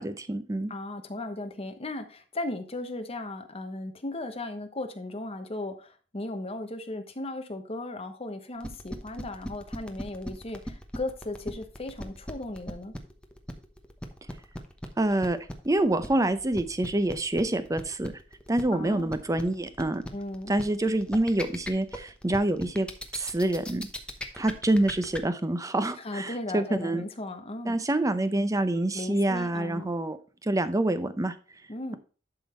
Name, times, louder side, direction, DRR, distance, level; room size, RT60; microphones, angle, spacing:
voice 1, 0.0-0.7 15.0-15.4 15.6-18.1 18.5-20.0 20.5-22.9 23.2-23.9 24.3-27.0 27.6-30.2 30.4-31.3, right 1 dB, 20° right, 11 dB, 0.6 m, -26 dB
voice 2, 0.7-12.9 18.7-19.1 20.1-20.5 26.0-27.8 28.9-29.9 31.7-32.0, left 2 dB, 30° left, 6 dB, 1.1 m, -36 dB
sound 1, 8.6-25.2, equal, 5° left, 0.9 m, -37 dB
11.5 x 3.8 x 4.4 m, 0.37 s
head